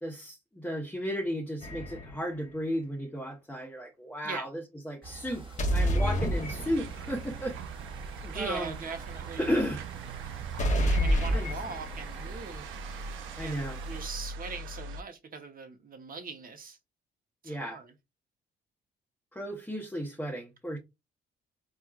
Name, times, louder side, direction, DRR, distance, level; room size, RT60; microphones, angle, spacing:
voice 1, 0.0-5.4 5.7-7.6 8.3-8.7 9.4-9.8 11.3-11.5 13.4-13.8 17.4-17.8 19.3-20.8, equal, 5° left, 0.9 m, -34 dB
sound 1, 1.6-2.3 5.6-7.1 10.6-12.2, equal, 35° left, 0.9 m, -28 dB
sound 2, 5.0-14.1, equal, 25° right, 1.2 m, -46 dB
sound 3, 6.3-15.0, right 5 dB, 80° right, 0.4 m, -41 dB
voice 2, 8.2-9.5 10.7-12.7 13.4-16.8 17.4-17.9, right 5 dB, 45° right, 0.9 m, -41 dB
4.3 x 2.4 x 2.4 m
cardioid pair, 90°, 20 cm